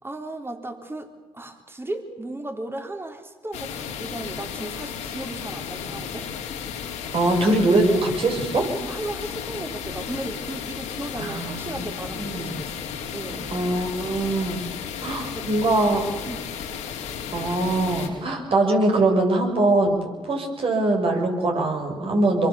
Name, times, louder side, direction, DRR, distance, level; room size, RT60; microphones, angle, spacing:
voice 1, 0.0-6.3 8.8-13.8 15.2-15.5 16.2-16.5, right 2 dB, 20° right, 6 dB, 3.6 m, -36 dB
sound 1, 3.5-18.1, left 7 dB, 85° left, 3.7 m, -34 dB
voice 2, 7.1-8.7 11.2-11.9 12.2-12.6 13.5-14.7 15.0-16.1 17.3-20.0 20.2-22.5, right 2 dB, 55° right, 3 dB, 6.1 m, -22 dB
25.0 x 23.0 x 7.1 m, 1.2 s
supercardioid pair, 60°, 12 cm